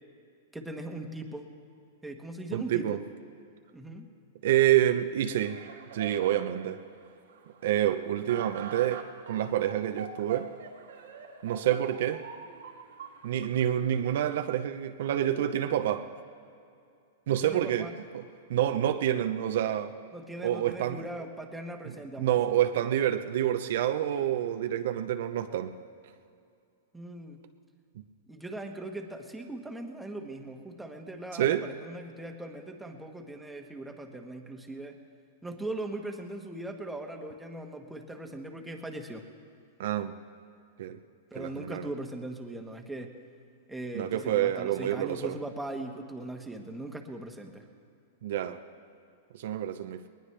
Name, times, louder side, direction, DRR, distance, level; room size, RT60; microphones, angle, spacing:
voice 1, 0.5-1.5 2.0-3.0 3.7-4.1 17.4-18.0 20.1-22.5 26.9-27.4 28.3-35.0 35.4-39.3 41.3-43.2 43.7-47.7, right 1 dB, 5° right, 2 dB, 1.3 m, -40 dB
voice 2, 2.5-3.0 4.4-5.6 5.9-6.8 7.6-10.5 11.4-12.2 13.2-16.1 17.3-17.9 18.1-18.2 18.5-19.9 20.4-21.0 22.2-25.7 31.3-31.6 39.8-40.1 40.8-41.0 41.4-41.9 43.9-45.3 48.2-48.6 49.3-50.1, right 11 dB, 65° right, 8 dB, 0.7 m, -28 dB
sound 1, 5.4-14.5, right 6 dB, 85° right, 2.1 m, -46 dB
20.5 x 19.5 x 3.3 m, 2.5 s
hypercardioid pair, 135°, 0 cm